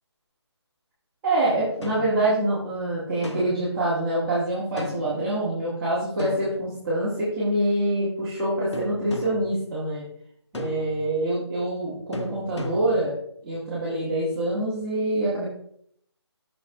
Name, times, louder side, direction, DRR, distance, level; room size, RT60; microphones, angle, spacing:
voice 1, 1.2-10.0 10.5-13.1 13.4-15.4, right 1 dB, 10° right, -14 dB, 1.6 m, -25 dB
sound 1, 1.8-2.2 3.2-3.7 4.8-5.2 6.2-7.0 8.7-9.5 10.5-11.1 12.1-13.1, left 3 dB, 75° left, 1.0 m, -36 dB
10.5 x 6.7 x 2.3 m, 0.67 s
hypercardioid pair, 175°, 14 cm